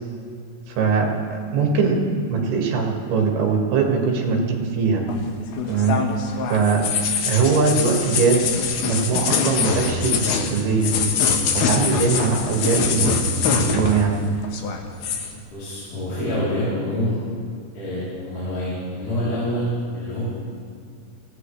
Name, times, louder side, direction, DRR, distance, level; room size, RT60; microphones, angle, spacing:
voice 1, 0.7-2.0 2.3-5.0 5.6-6.0 6.5-6.9 7.3-8.5 8.8-11.1 11.5-14.2, right 5 dB, 65° right, 0 dB, 3.8 m, -21 dB
sound 1, 5.1-14.2 14.4-15.3, left 5 dB, 70° left, 2.7 m, -24 dB
voice 2, 15.5-17.2 17.7-20.2, left 1 dB, 50° left, -11 dB, 5.0 m, -26 dB
22.5 x 16.5 x 3.3 m, 2.2 s
omnidirectional pair, 5.0 m